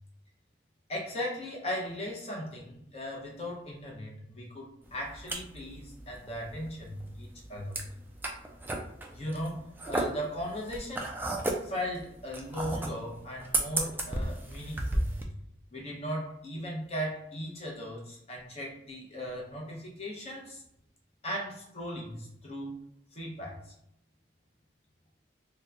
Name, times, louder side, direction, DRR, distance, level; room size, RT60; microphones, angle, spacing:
voice 1, 0.9-7.8 9.1-11.1 11.6-15.2 15.7-20.6 21.2-22.8 23.1-23.7, equal, 35° left, -3 dB, 0.8 m, -38 dB
sound 1, 4.8-15.2, right 2 dB, 10° right, 0.3 m, -34 dB
2.9 x 2.2 x 3.7 m, 0.76 s
head